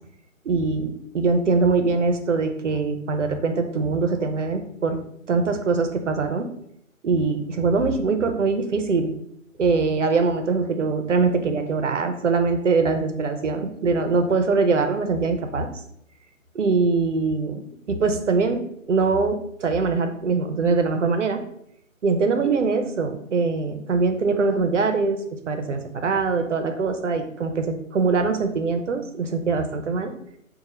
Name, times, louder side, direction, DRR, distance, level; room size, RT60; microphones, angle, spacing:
voice 1, 0.4-5.0 5.3-6.5 7.0-9.1 9.6-15.7 16.5-17.6 17.9-18.6 18.9-21.4 22.0-25.2 25.5-30.1, right 4 dB, 60° right, 7 dB, 0.6 m, -22 dB
2.9 x 2.2 x 4.0 m, 0.72 s
hypercardioid pair, 170°, 41 cm